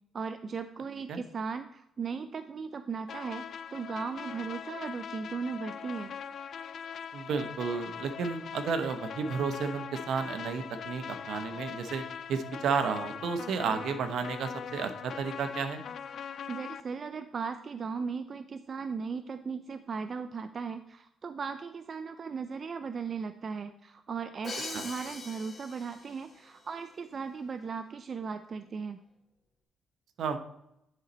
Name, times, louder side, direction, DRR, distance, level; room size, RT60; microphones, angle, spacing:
voice 1, 0.1-3.4 3.7-6.1 16.5-29.0, right 5 dB, 45° right, 10 dB, 0.4 m, -37 dB
sound 1, 3.1-16.8, left 7 dB, 60° left, 0.3 m, -41 dB
voice 2, 7.1-12.0 12.3-15.8 24.7-24.8 30.2-30.4, right 5 dB, 70° right, 8 dB, 0.8 m, -32 dB
Crash cymbal, 24.4-26.3, left 3 dB, 30° left, 1.7 m, -41 dB
9.9 x 4.0 x 4.2 m, 0.80 s
cardioid pair, 90°, 0 cm